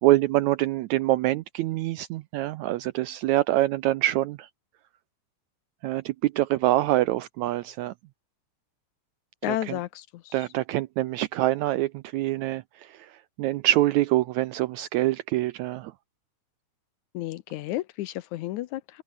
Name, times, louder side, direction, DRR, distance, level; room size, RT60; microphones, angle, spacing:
voice 1, 0.0-4.5 5.8-7.9 9.5-9.8 10.3-13.0 13.4-15.9, right 16 dB, 80° right, 1.7 m, -25 dB
voice 2, 9.4-10.3 17.1-19.0, left 15 dB, 75° left, 1.9 m, -32 dB
omnidirectional pair, 3.8 m